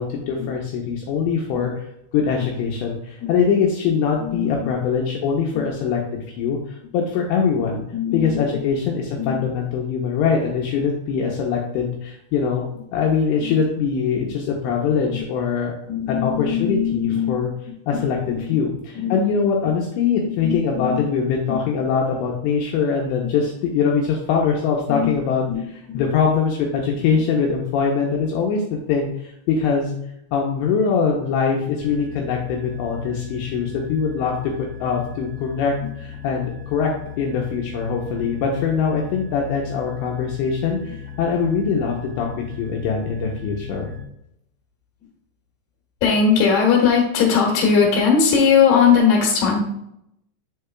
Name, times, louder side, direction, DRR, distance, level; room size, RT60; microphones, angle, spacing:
voice 1, 0.0-1.8 2.1-7.8 8.1-12.6 12.9-15.7 16.1-17.5 17.9-28.6 28.9-30.0 30.3-36.9 37.2-43.9, left 6 dB, 90° left, 0 dB, 2.6 m, -22 dB
voice 2, 4.2-4.7 5.5-5.7 7.9-8.6 9.2-9.4 13.4-13.6 15.1-15.2 15.9-17.4 17.7-18.6 18.9-19.2 20.2-21.0 21.5-21.6 23.2-23.3 24.9-25.2 25.5-26.1 46.0-49.6, left 6 dB, 70° left, -2 dB, 2.1 m, -20 dB
sound 1, 31.8-44.0, left 7 dB, 45° right, 1.3 m, -37 dB
7.4 x 6.6 x 2.3 m, 0.77 s
omnidirectional pair, 5.8 m